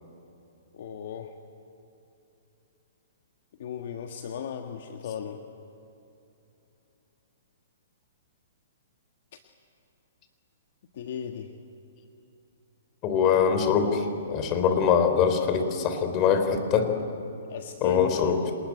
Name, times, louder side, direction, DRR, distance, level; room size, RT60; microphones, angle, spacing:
voice 1, 0.7-1.3 3.6-5.4 10.9-11.5 17.5-18.4, left 8 dB, 60° left, 5 dB, 1.6 m, -35 dB
voice 2, 13.0-16.9 17.8-18.5, left 7 dB, 30° left, 8 dB, 3.6 m, -23 dB
26.5 x 20.5 x 9.8 m, 2.9 s
hypercardioid pair, 140°, 0 cm